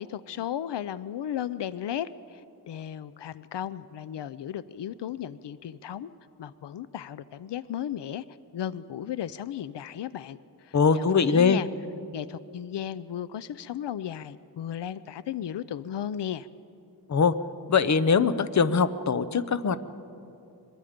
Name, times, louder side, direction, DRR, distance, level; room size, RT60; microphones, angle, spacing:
voice 1, 0.0-6.1 6.4-8.2 8.5-11.7 12.1-16.5, left 10 dB, 90° left, 15 dB, 0.6 m, -35 dB
voice 2, 10.7-11.6 17.1-17.3 17.7-19.8, left 5 dB, 45° left, 13 dB, 0.7 m, -22 dB
23.5 x 22.0 x 5.1 m, 2.6 s
wide cardioid pair, 150°, 41 cm